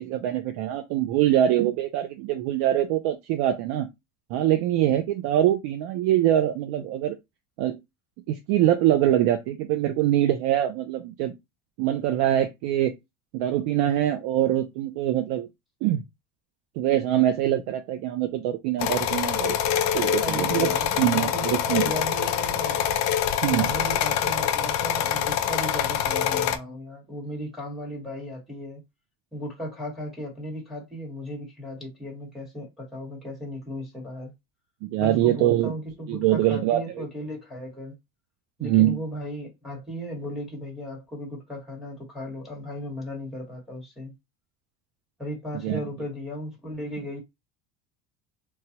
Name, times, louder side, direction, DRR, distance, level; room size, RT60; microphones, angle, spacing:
voice 1, 0.0-3.9 4.3-7.2 7.6-7.8 8.3-11.3 11.8-12.9 13.3-15.5 15.8-16.0 16.8-19.6 19.9-20.7 21.0-21.8 23.4-23.7 34.8-35.7 36.1-37.1 38.6-39.0 45.6-45.8, right 12 dB, 70° right, 0.5 m, -23 dB
sound 1, 18.8-26.6, left 9 dB, 45° left, 0.4 m, -25 dB
voice 2, 20.2-22.9 23.4-28.8 29.3-34.3 35.0-38.0 38.6-44.1 45.2-47.2, equal, ahead, 1.2 m, -36 dB
3.1 x 2.2 x 2.8 m
cardioid pair, 165°, 39 cm